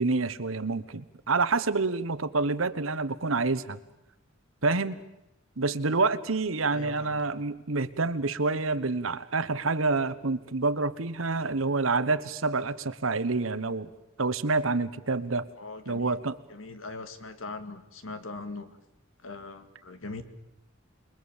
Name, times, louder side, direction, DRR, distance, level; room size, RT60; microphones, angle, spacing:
voice 1, 0.0-3.8 4.6-5.0 5.6-13.9 14.2-15.5 15.9-16.4, right 3 dB, 85° right, 14 dB, 1.2 m, -27 dB
voice 2, 6.7-7.2 15.6-16.2 16.5-18.8 19.2-20.2, left 3 dB, 80° left, 9 dB, 2.1 m, -41 dB
28.5 x 22.0 x 7.2 m, 0.85 s
head